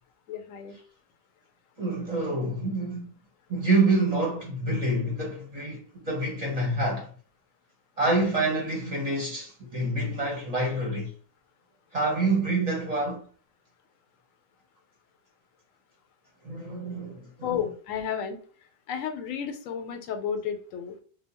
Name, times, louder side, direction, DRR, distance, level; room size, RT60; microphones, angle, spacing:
voice 1, 0.3-0.8 17.4-18.4 18.9-20.9, left 8 dB, 90° left, 1.0 m, -32 dB
voice 2, 1.8-3.1 3.5-7.1 8.0-11.1 11.9-13.2 16.4-17.6, right 2 dB, 35° right, 0.7 m, -27 dB
2.7 x 2.1 x 2.8 m
omnidirectional pair, 1.3 m